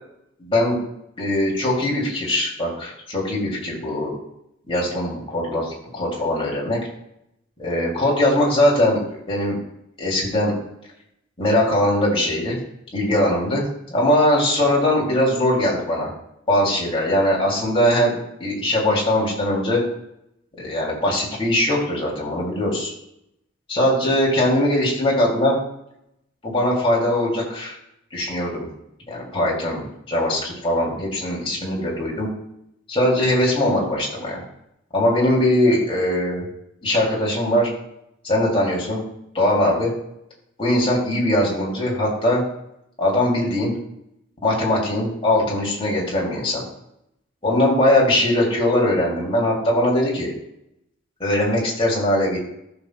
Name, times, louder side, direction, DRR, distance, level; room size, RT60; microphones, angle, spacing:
voice 1, 0.4-0.8 1.2-4.1 4.7-6.8 7.6-9.0 9.3-9.6 10.0-10.5 11.4-12.6 12.9-13.6 13.9-16.1 16.5-19.8 20.6-22.9 23.7-25.6 26.4-27.8 28.1-28.7 29.1-32.3 32.9-34.4 34.9-36.5 36.8-37.7 38.2-39.0 39.4-39.9 40.6-42.4 43.0-43.7 44.4-46.6 47.4-50.3 51.2-52.4, left 1 dB, 30° left, -5 dB, 3.3 m, -21 dB
15.0 x 6.2 x 2.5 m, 0.79 s
head